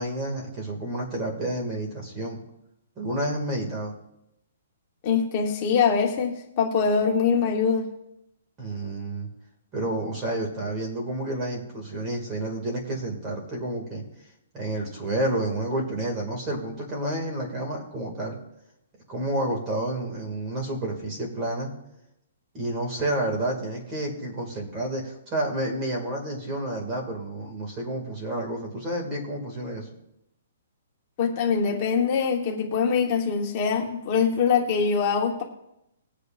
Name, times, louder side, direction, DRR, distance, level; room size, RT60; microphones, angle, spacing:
voice 1, 0.0-2.4 3.0-3.9 8.6-9.3 9.7-14.0 14.5-18.4 19.1-21.7 22.5-29.9, right 1 dB, 20° right, 0 dB, 2.3 m, -30 dB
voice 2, 5.0-7.9 31.2-35.4, left 6 dB, 30° left, 0 dB, 1.3 m, -23 dB
21.0 x 8.2 x 2.6 m, 0.84 s
hypercardioid pair, 165°, 0 cm